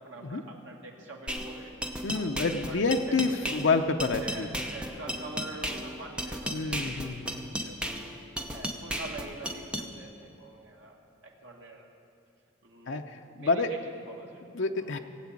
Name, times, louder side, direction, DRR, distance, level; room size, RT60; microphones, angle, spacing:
voice 1, 0.0-1.7 2.1-3.6 4.2-8.0 8.5-11.0 11.2-11.9 12.6-13.1 13.4-14.4 14.8-15.0, right 2 dB, 70° right, 0 dB, 2.1 m, -45 dB
sound 1, 1.3-9.9, equal, 5° right, 0.8 m, -35 dB
voice 2, 2.0-4.5 6.5-7.5 12.9-13.7 14.5-15.0, left 3 dB, 65° left, 5 dB, 0.6 m, -28 dB
18.0 x 8.2 x 8.5 m, 2.6 s
head